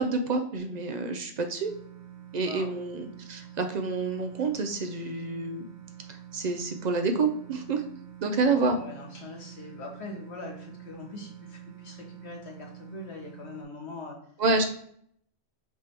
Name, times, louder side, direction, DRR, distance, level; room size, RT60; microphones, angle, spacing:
voice 1, 0.0-1.7 2.3-5.7 6.1-7.8 8.2-8.8 14.4-14.7, right 3 dB, 70° right, 6 dB, 0.4 m, -28 dB
sound 1, 1.6-13.6, right 10 dB, 25° right, 1.0 m, -47 dB
voice 2, 2.4-2.7 8.5-14.2, left 3 dB, 60° left, 0 dB, 1.4 m, -42 dB
5.3 x 3.3 x 2.9 m, 0.65 s
omnidirectional pair, 1.3 m